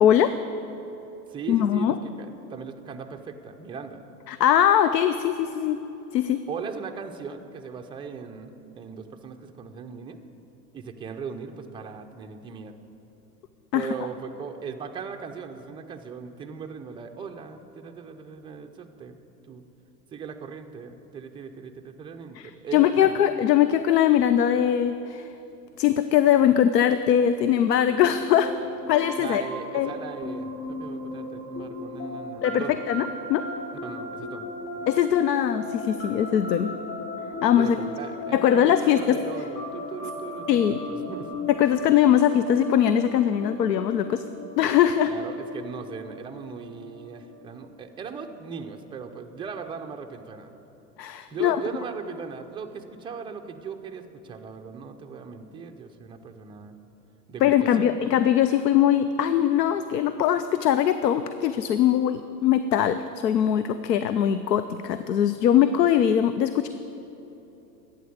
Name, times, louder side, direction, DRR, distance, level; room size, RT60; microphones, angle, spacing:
voice 1, 0.0-0.4 1.5-2.0 4.3-5.8 6.1-6.4 13.7-13.9 22.4-25.3 25.8-28.5 28.9-29.4 29.7-29.9 32.4-33.4 34.9-36.7 37.4-37.8 38.3-39.2 40.5-40.8 41.5-44.2 44.6-45.1 51.0-51.6 57.4-66.7, left 10 dB, 75° left, 11 dB, 0.7 m, -21 dB
voice 2, 1.3-4.0 6.5-10.2 10.7-12.7 13.7-19.2 19.5-19.6 20.1-23.2 29.2-32.8 33.7-34.5 37.6-41.3 45.1-50.5 51.3-56.8 57.3-58.1, right 6 dB, 10° right, 4 dB, 0.5 m, -38 dB
sound 1, 28.0-47.5, left 2 dB, 45° left, 3.5 m, -37 dB
12.5 x 8.7 x 7.9 m, 3.0 s
hypercardioid pair, 100°, 50 cm